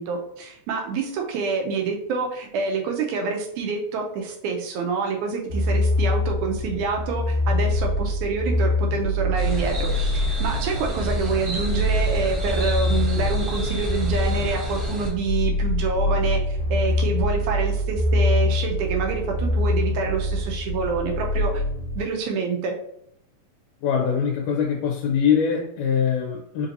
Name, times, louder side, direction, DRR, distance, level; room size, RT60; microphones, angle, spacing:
voice 1, 0.0-21.6 22.0-22.8, right 4 dB, 80° right, 1 dB, 2.0 m, -27 dB
sound 1, 5.5-22.0, left 1 dB, 65° left, 2.1 m, -24 dB
sound 2, 9.4-15.1, right 1 dB, 65° right, 0.9 m, -30 dB
voice 2, 23.8-26.7, left 7 dB, 85° left, 1 dB, 2.1 m, -23 dB
5.0 x 2.6 x 2.7 m, 0.73 s
omnidirectional pair, 3.5 m